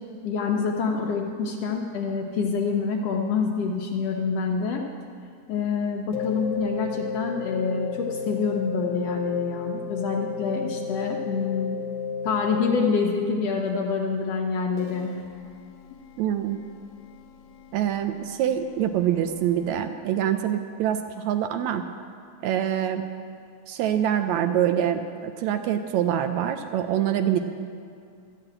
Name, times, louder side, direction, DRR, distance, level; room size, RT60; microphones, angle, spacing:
voice 1, 0.2-4.8 5.5-11.8 12.2-15.1, left 5 dB, 70° left, 1 dB, 1.6 m, -26 dB
sound 1, 6.1-13.0 14.8-19.9, left 6 dB, 90° left, 2.1 m, -35 dB
voice 2, 16.2-16.6 17.7-21.8 22.4-23.1 23.7-27.4, right 10 dB, 80° right, 8 dB, 1.8 m, -25 dB
12.5 x 6.5 x 8.7 m, 2.4 s
omnidirectional pair, 3.4 m